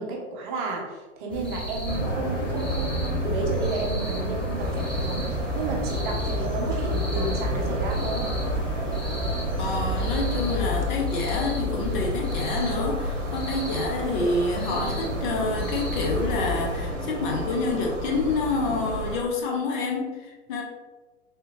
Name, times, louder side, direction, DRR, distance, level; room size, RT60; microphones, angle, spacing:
voice 1, 0.0-8.3, right 2 dB, 40° right, 0 dB, 0.8 m, -32 dB
sound 1, 1.3-16.8, equal, 5° left, 0.4 m, -34 dB
sound 2, 1.9-10.9, right 2 dB, 75° left, 1.2 m, -30 dB
sound 3, 4.6-19.2, left 1 dB, 85° right, 0.8 m, -31 dB
voice 2, 9.6-20.6, left 3 dB, 40° left, 0 dB, 0.7 m, -28 dB
3.4 x 2.7 x 2.9 m, 1.3 s
figure-of-eight pair, 105°, 37 cm